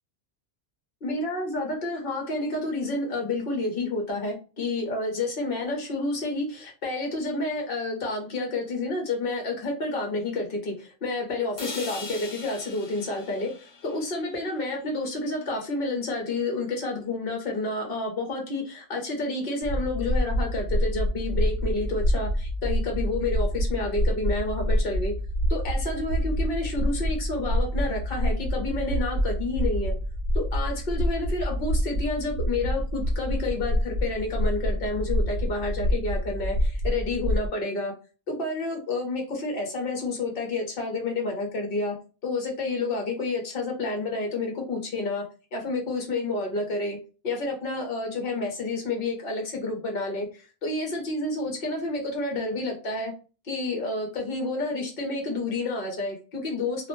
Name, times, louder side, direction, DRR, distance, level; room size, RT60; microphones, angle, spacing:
voice 1, 1.0-25.1 25.5-29.9 30.3-37.9 38.3-41.9 42.2-45.2 45.5-47.0 47.2-53.1 53.4-56.9, left 2 dB, 65° left, 1 dB, 1.0 m, -29 dB
sound 1, 11.6-15.6, left 3 dB, 40° left, 0.4 m, -42 dB
sound 2, 19.6-37.5, equal, 45° right, 0.5 m, -27 dB
2.4 x 2.1 x 3.0 m, 0.33 s
omnidirectional pair, 1.1 m